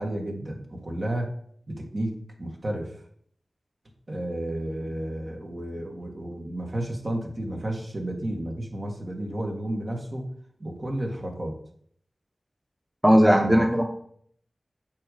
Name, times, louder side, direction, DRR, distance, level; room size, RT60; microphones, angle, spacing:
voice 1, 0.0-1.3 1.7-2.9 4.1-10.3 10.6-11.5 13.3-13.7, right 1 dB, 50° right, 1 dB, 2.0 m, -32 dB
voice 2, 13.0-13.8, equal, 10° right, 3 dB, 1.1 m, -17 dB
8.6 x 3.9 x 6.8 m, 0.63 s
cardioid pair, 45°, 0 cm